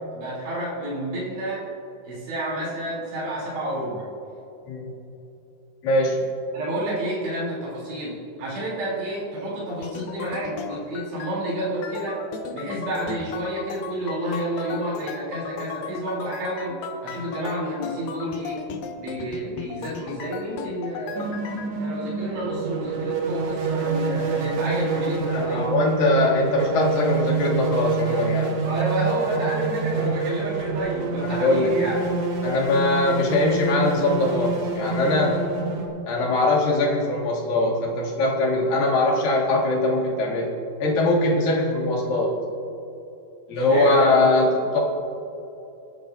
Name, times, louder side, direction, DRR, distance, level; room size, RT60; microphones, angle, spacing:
voice 1, 0.1-1.6 2.1-4.1 6.5-12.2 12.5-18.6 18.9-21.3 21.8-25.7 26.7-26.8 28.7-32.0 43.6-44.2, right 1 dB, 90° right, -6 dB, 5.4 m, -30 dB
voice 2, 5.8-6.2 25.3-28.5 31.2-32.0 32.4-35.4 36.1-40.5 40.8-42.3 43.5-44.8, left 2 dB, 60° left, -3 dB, 3.3 m, -21 dB
sound 1, 9.7-11.4 11.8-21.7, left 6 dB, 75° left, 2.1 m, -36 dB
sound 2, 21.1-35.9, right 4 dB, 75° right, 1.4 m, -27 dB
20.5 x 10.5 x 2.6 m, 2.9 s
omnidirectional pair, 4.7 m